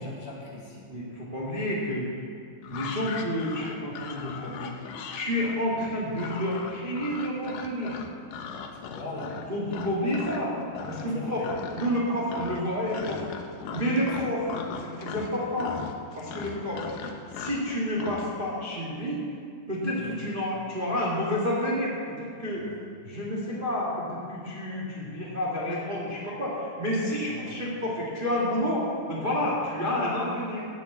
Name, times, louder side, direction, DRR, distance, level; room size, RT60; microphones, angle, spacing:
voice 1, 0.0-0.9 8.7-9.4 11.1-11.6 19.9-20.2 22.5-22.9 27.3-27.7 29.6-29.7, left 2 dB, 55° left, -3 dB, 2.9 m, -40 dB
voice 2, 0.9-2.1 2.7-4.7 5.1-7.9 9.5-10.6 10.9-11.5 11.7-13.2 13.7-14.5 14.8-15.7 16.1-16.8 17.3-19.2 19.7-22.7 23.0-30.7, equal, 25° right, -6 dB, 1.1 m, -29 dB
sound 1, 2.6-10.4 10.7-11.2 11.4-12.0 12.3-18.3, left 6 dB, 80° left, 2.0 m, -38 dB
16.0 x 7.0 x 8.3 m, 2.2 s
omnidirectional pair, 5.2 m